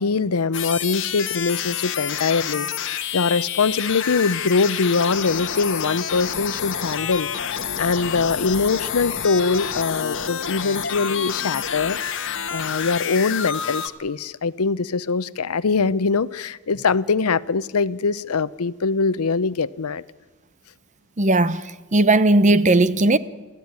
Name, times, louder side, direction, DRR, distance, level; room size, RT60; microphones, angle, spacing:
voice 1, 0.0-2.7 3.1-12.0 12.5-20.0, left 4 dB, 85° left, 0.7 m, -23 dB
sound 1, 0.5-13.9, left 8 dB, 60° left, 1.5 m, -28 dB
voice 2, 21.2-21.6 21.9-23.2, right 2 dB, 35° right, 0.8 m, -16 dB
29.5 x 14.0 x 9.6 m
head